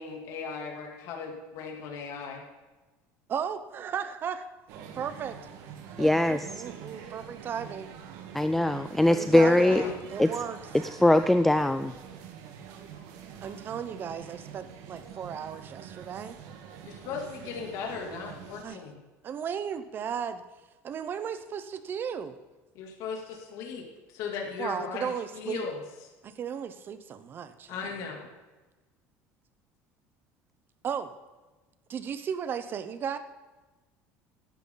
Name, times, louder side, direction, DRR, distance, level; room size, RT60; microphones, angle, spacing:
voice 1, 0.0-2.4 9.7-9.9 16.8-19.0 22.7-25.8 27.7-28.3, left 5 dB, 60° left, 0 dB, 2.9 m, -37 dB
voice 2, 3.3-4.5 4.9-5.4 6.0-7.9 9.1-10.6 13.4-16.4 18.6-18.8 19.2-20.4 20.8-22.4 24.6-25.6 26.2-27.8 30.8-31.1 31.9-33.2, right 7 dB, 35° right, 11 dB, 0.9 m, -35 dB
sound 1, 4.7-18.6, right 8 dB, 70° right, 1.7 m, -45 dB
voice 3, 6.0-6.6 8.3-9.8 10.2-10.3 10.9-11.9, left 1 dB, 5° left, 10 dB, 0.3 m, -22 dB
17.0 x 11.5 x 4.0 m, 1.2 s
cardioid pair, 145°, 6 cm